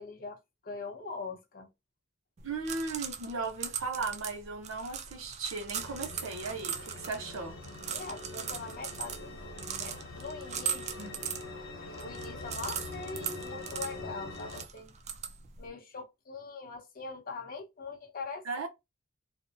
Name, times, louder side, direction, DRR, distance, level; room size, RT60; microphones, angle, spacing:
voice 1, 0.0-1.7 7.9-11.1 12.0-14.9 15.6-18.4, left 4 dB, 45° left, 0.8 m, -42 dB
sound 1, 2.4-15.7, right 8 dB, 35° right, 0.3 m, -40 dB
voice 2, 2.4-7.6 11.0-11.2 18.5-18.7, right 3 dB, 75° right, 0.7 m, -37 dB
sound 2, 5.8-14.7, left 2 dB, 75° left, 1.0 m, -44 dB
2.5 x 2.1 x 2.6 m
head